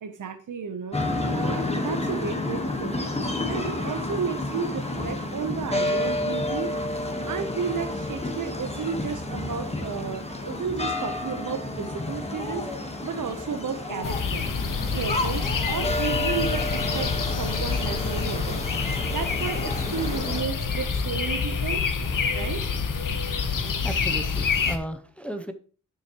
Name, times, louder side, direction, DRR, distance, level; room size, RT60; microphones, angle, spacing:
voice 1, 0.0-3.1 3.5-6.8 7.2-12.7 13.0-14.4 14.9-17.1 17.4-18.6 19.1-21.8 22.3-22.6, right 6 dB, 70° right, 0.9 m, -33 dB
sound 1, 0.9-20.4, left 2 dB, 20° left, 1.3 m, -30 dB
sound 2, 14.0-24.8, left 5 dB, 70° left, 1.1 m, -27 dB
voice 2, 23.5-25.5, equal, 5° left, 0.6 m, -35 dB
9.6 x 7.6 x 3.0 m
wide cardioid pair, 140°, 33 cm